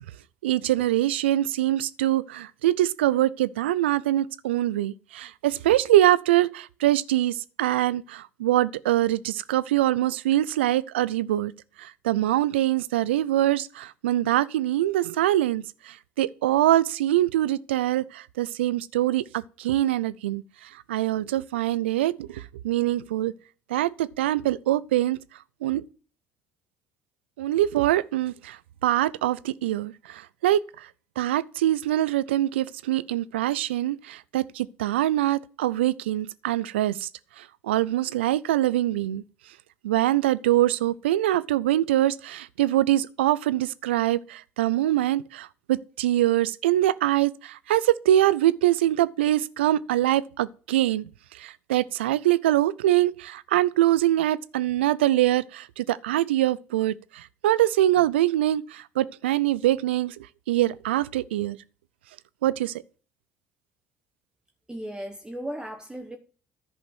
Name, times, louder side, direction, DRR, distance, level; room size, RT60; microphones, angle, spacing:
voice 1, 0.4-11.5 11.8-23.3 23.7-25.2 25.6-25.8 27.4-30.9 31.2-37.1 37.4-39.2 39.8-51.1 51.3-60.2 60.5-61.6 62.4-62.7, right 14 dB, 90° right, 0.4 m, -24 dB
voice 2, 64.7-66.2, right 1 dB, 15° right, 1.1 m, -36 dB
10.5 x 5.2 x 6.1 m
hypercardioid pair, 65°, 6 cm